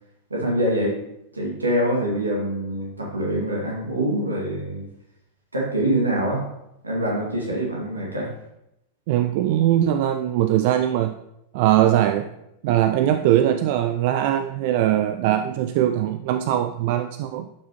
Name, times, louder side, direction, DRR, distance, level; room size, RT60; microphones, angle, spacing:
voice 1, 0.3-1.0 1.3-4.9 5.5-6.5 6.8-8.3, right 1 dB, 80° right, -2 dB, 2.1 m, -24 dB
voice 2, 9.1-11.1 11.5-12.3 12.6-17.5, right 12 dB, 50° right, 9 dB, 0.3 m, -21 dB
11.0 x 5.9 x 3.0 m, 0.84 s
figure-of-eight pair, 90°, 0 cm